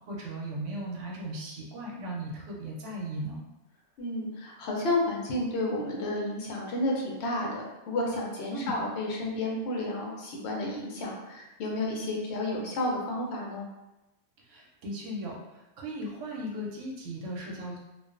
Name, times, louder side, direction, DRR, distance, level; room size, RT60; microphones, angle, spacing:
voice 1, 0.1-3.4 8.5-8.8 14.4-17.8, right 1 dB, 90° right, -2 dB, 1.0 m, -37 dB
voice 2, 4.0-13.7, left 1 dB, 70° left, -1 dB, 0.9 m, -31 dB
2.3 x 2.2 x 2.4 m, 1.0 s
omnidirectional pair, 1.2 m